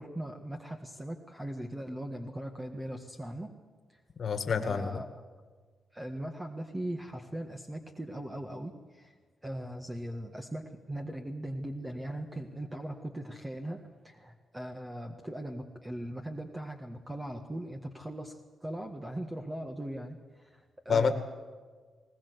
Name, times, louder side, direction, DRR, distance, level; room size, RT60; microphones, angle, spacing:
voice 1, 0.0-3.5 3.9-4.0 4.6-5.1 5.9-9.2 9.4-21.1, right 1 dB, 15° right, 3 dB, 1.7 m, -39 dB
voice 2, 4.2-5.0 20.9-21.1, left 6 dB, 55° left, 8 dB, 2.0 m, -28 dB
20.5 x 19.0 x 8.2 m, 1.5 s
cardioid pair, 95°, 0 cm